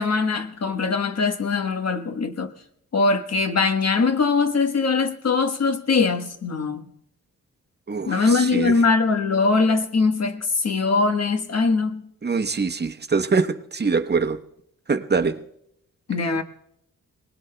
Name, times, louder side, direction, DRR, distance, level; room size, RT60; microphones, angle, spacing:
voice 1, 0.0-2.5 2.9-6.8 8.1-12.0 16.1-16.4, left 4 dB, 50° left, 1.2 m, -21 dB
voice 2, 7.9-8.8 12.2-14.4 14.9-15.4, right 4 dB, 30° right, 0.9 m, -24 dB
24.0 x 19.5 x 2.2 m
cardioid pair, 60°, 33 cm